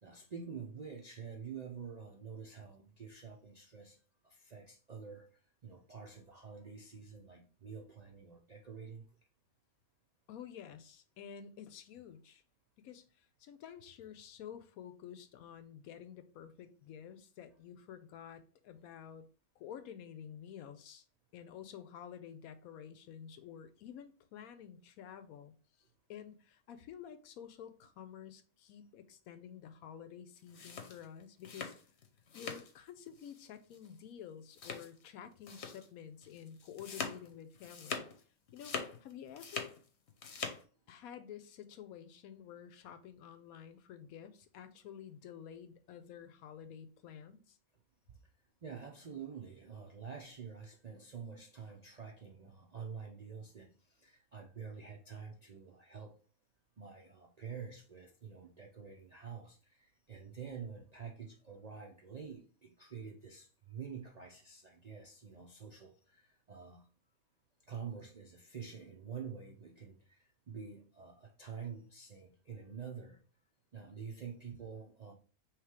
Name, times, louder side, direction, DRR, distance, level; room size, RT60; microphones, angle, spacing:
voice 1, 0.0-4.0 4.2-9.1 48.1-48.2 48.6-56.2 56.8-66.9 67.6-73.2 73.7-75.1, right 6 dB, 60° right, 0.4 m, -48 dB
voice 2, 10.3-12.4 12.8-19.3 19.6-21.0 21.3-25.5 26.1-31.7 32.3-38.1 38.5-39.7 40.9-47.6, left 9 dB, 80° left, 1.1 m, -50 dB
sound 1, 30.4-32.8 33.1-33.5 33.7-33.9 34.5-35.1 35.5-35.9 36.2-38.2 38.5-39.8 40.1-40.6, left 5 dB, 55° left, 1.0 m, -43 dB
3.2 x 3.1 x 4.7 m
omnidirectional pair, 1.5 m